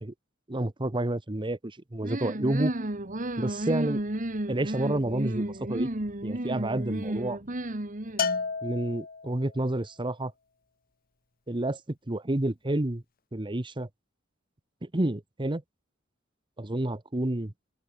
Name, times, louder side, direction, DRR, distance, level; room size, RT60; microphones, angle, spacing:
voice 1, 0.5-2.7 3.4-4.0 4.5-5.9 6.2-7.4 8.6-10.3 11.5-13.0 13.3-13.9 14.8-15.6 16.6-17.5, right 1 dB, 25° right, 1.0 m, -29 dB
sound 1, 2.0-8.4, right 1 dB, 40° right, 2.2 m, -32 dB
Bell, 8.2-9.5, left 5 dB, 50° left, 2.2 m, -31 dB
open air
head